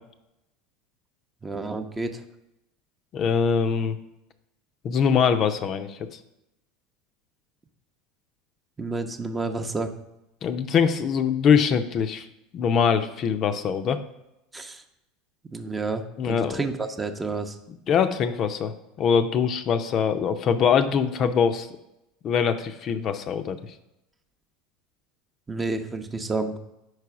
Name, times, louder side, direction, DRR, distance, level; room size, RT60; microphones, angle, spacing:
voice 1, 1.4-2.2 8.8-9.9 14.5-14.8 15.5-17.6 25.5-26.5, right 3 dB, 20° right, 7 dB, 0.6 m, -30 dB
voice 2, 3.1-4.0 4.8-6.2 10.4-12.3 12.5-14.0 16.2-16.6 17.9-21.7 22.2-23.7, left 7 dB, 45° left, 8 dB, 0.5 m, -23 dB
4.8 x 4.6 x 5.7 m, 0.90 s
hypercardioid pair, 90°, 0 cm